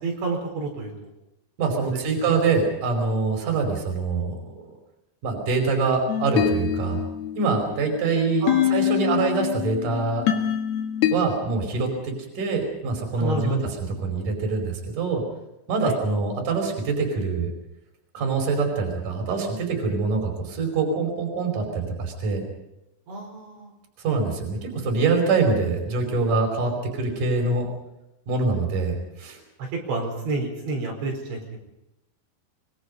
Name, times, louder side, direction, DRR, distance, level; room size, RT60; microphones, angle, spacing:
voice 1, 0.0-1.1 2.3-2.4 8.4-8.8 13.2-13.7 15.8-16.0 23.1-23.7 29.6-31.6, right 3 dB, 70° right, 0 dB, 6.7 m, -29 dB
voice 2, 1.6-4.7 5.2-7.0 7.3-10.3 11.1-13.6 14.0-15.2 15.7-17.5 18.1-22.4 24.0-27.7 28.3-29.4, right 4 dB, 45° right, 3 dB, 6.2 m, -24 dB
sound 1, 6.1-11.2, left 10 dB, 60° left, 3.6 m, -25 dB
25.0 x 24.5 x 5.4 m, 0.90 s
omnidirectional pair, 5.5 m